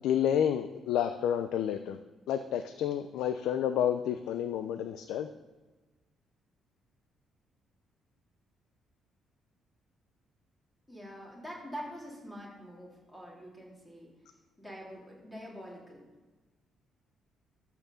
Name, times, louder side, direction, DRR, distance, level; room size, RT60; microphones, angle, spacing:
voice 1, 0.0-2.0 2.3-5.3, left 9 dB, 90° left, 9 dB, 0.6 m, -30 dB
voice 2, 10.9-14.1 14.6-16.0, equal, 10° left, -4 dB, 3.9 m, -45 dB
12.5 x 5.9 x 6.9 m, 1.2 s
cardioid pair, 125°, 0 cm